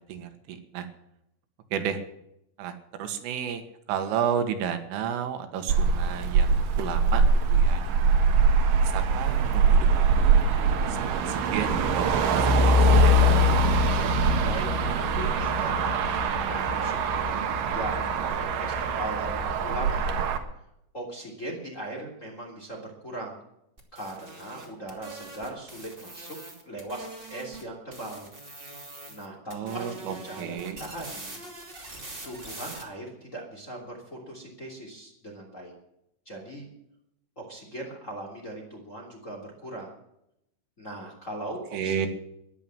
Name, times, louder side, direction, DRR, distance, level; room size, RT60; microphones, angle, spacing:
voice 1, 0.1-0.9 1.7-2.0 2.6-3.6 3.9-7.2 7.5-7.8 8.8-13.2 29.5-30.9 41.7-42.1, right 8 dB, 85° right, 8 dB, 4.1 m, -32 dB
Motor vehicle (road), 5.7-20.4, right 3 dB, 65° right, 2.3 m, -22 dB
voice 2, 14.4-17.4 17.7-20.3 20.9-23.4 23.9-26.4 26.7-28.3 29.1-31.4 32.2-35.7 36.2-36.7 37.4-39.9 40.8-42.1, right 1 dB, 20° left, 0 dB, 2.6 m, -39 dB
sound 1, 23.8-27.6 27.9-29.3 29.5-32.8, right 2 dB, 20° right, 1.4 m, -43 dB
13.5 x 10.5 x 8.8 m, 0.80 s
omnidirectional pair, 5.7 m